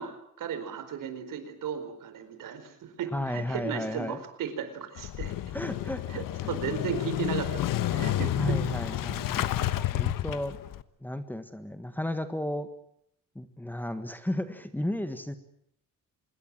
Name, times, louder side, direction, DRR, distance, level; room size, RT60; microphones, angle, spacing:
voice 1, 0.0-5.3 6.1-8.6, right 8 dB, 75° right, 9 dB, 4.7 m, -35 dB
voice 2, 3.1-4.2 5.5-6.2 8.4-10.6 11.0-12.7 13.3-15.4, left 1 dB, 5° left, 10 dB, 1.5 m, -33 dB
Motorcycle / Engine starting, 5.0-10.8, left 13 dB, 90° left, 1.2 m, -30 dB
25.5 x 21.5 x 7.6 m, 0.71 s
cardioid pair, 155°, 32 cm